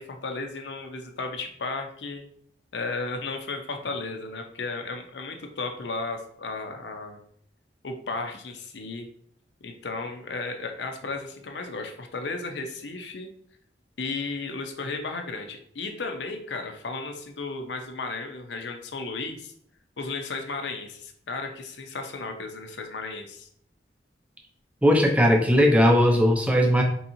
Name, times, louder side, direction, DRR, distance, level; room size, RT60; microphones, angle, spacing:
voice 1, 0.0-2.2 2.7-7.2 7.8-9.1 9.6-13.3 14.0-19.5 20.0-23.5, left 3 dB, 80° left, 5 dB, 0.6 m, -34 dB
voice 2, 24.8-26.8, equal, 10° right, 2 dB, 0.5 m, -18 dB
4.6 x 2.9 x 2.6 m, 0.65 s
head